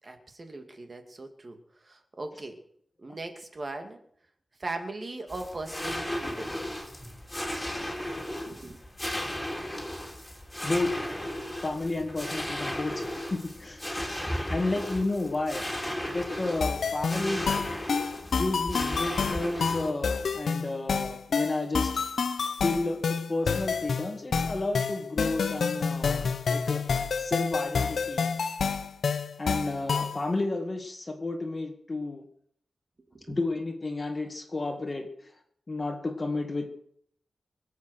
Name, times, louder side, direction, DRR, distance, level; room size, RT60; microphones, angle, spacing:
voice 1, 0.0-2.6 3.0-4.0 4.6-6.6 8.4-8.8 18.2-18.3 33.1-33.4, right 2 dB, 35° right, 5 dB, 2.4 m, -39 dB
sound 1, 5.3-19.9, left 1 dB, 10° left, 3.5 m, -35 dB
voice 2, 10.6-11.1 11.6-13.8 14.5-15.6 16.1-17.6 18.3-22.0 22.6-26.8 27.2-28.3 29.4-32.2 33.3-35.1 35.7-36.7, left 2 dB, 30° left, 4 dB, 2.0 m, -31 dB
sound 2, 16.6-30.2, left 5 dB, 85° left, 1.1 m, -29 dB
25.0 x 8.3 x 6.5 m, 0.65 s
wide cardioid pair, 155°, 0 cm